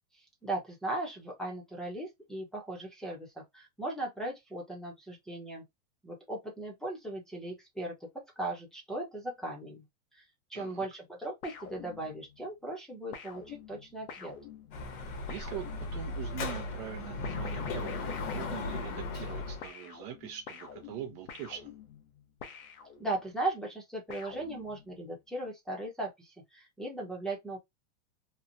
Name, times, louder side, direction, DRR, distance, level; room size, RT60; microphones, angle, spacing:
voice 1, 0.1-5.6 6.0-9.8 10.1-10.2 10.5-14.3 23.0-27.6, right 2 dB, ahead, 0.7 m, -38 dB
voice 2, 10.5-10.9 14.9-21.7, right 11 dB, 45° right, 0.5 m, -43 dB
sound 1, 11.4-12.4 13.1-16.3 17.2-19.3 19.6-23.4 24.1-25.1, left 6 dB, 85° left, 0.9 m, -47 dB
Dog / Motorcycle, 14.7-19.7, left 3 dB, 60° left, 1.0 m, -37 dB
3.0 x 2.1 x 2.5 m
supercardioid pair, 140°, 42 cm